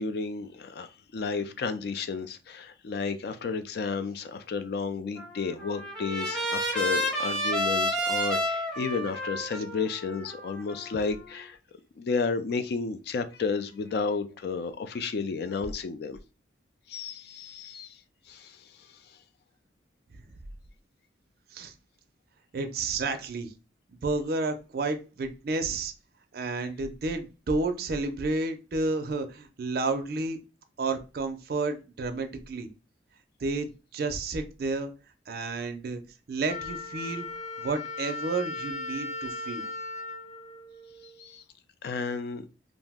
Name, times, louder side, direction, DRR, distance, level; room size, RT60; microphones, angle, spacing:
voice 1, 0.0-11.6 12.0-16.2 16.9-18.0 18.3-18.7 41.2-41.4 41.8-42.4, left 4 dB, 55° left, 0.3 m, -32 dB
Trumpet, 5.2-11.3, equal, 5° left, 0.7 m, -31 dB
voice 2, 22.5-23.5 24.0-25.9 26.3-30.4 30.8-32.7 33.4-34.9 35.3-36.0 36.3-37.2 37.6-39.7, right 3 dB, 50° right, 0.4 m, -31 dB
Wind instrument woodwind instrument, 36.5-41.3, left 3 dB, 35° left, 0.7 m, -37 dB
2.5 x 2.0 x 3.4 m
head